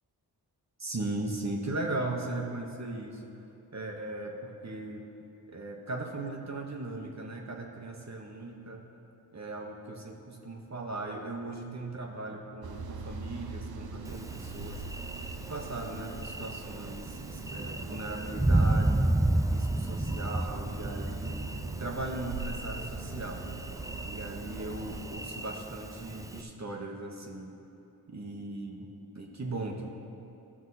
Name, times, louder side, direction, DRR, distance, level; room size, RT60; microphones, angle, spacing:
voice 1, 0.8-3.3 3.7-5.0 5.5-8.8 9.3-14.8 15.4-19.1 19.5-21.4 21.8-23.5 24.1-27.5 28.1-29.9, right 2 dB, 45° right, 1 dB, 1.4 m, -38 dB
sound 1, 12.6-25.1, right 4 dB, 70° right, 0.7 m, -42 dB
Thunder, 14.1-26.4, right 1 dB, 10° right, 0.5 m, -32 dB
14.0 x 6.2 x 4.2 m, 2.8 s
cardioid pair, 50°, 39 cm